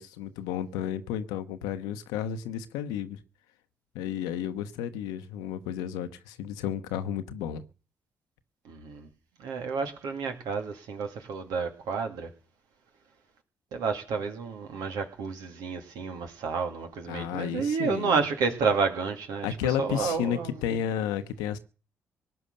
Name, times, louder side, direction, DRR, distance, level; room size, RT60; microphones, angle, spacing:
voice 1, 0.0-3.2 3.9-7.6 17.1-18.2 19.4-21.6, left 9 dB, 85° left, 1.1 m, -32 dB
voice 2, 8.6-9.1 9.4-12.3 13.7-20.6, right 5 dB, 75° right, 2.4 m, -30 dB
18.0 x 9.8 x 6.8 m
hypercardioid pair, 50°, 7 cm